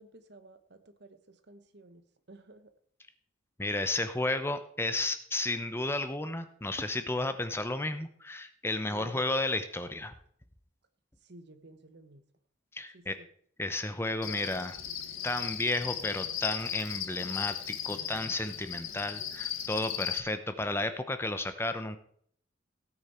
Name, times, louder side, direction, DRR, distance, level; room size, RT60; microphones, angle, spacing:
voice 1, 0.0-2.7 8.9-9.4 11.3-12.2 12.9-13.3, right 2 dB, 55° right, 10 dB, 1.0 m, -54 dB
voice 2, 3.6-10.1 12.7-13.2 13.6-14.8 15.2-22.0, left 2 dB, 10° left, 9 dB, 0.7 m, -33 dB
Cricket, 14.2-20.2, left 9 dB, 85° left, 1.4 m, -36 dB
17.0 x 8.8 x 4.3 m, 0.63 s
head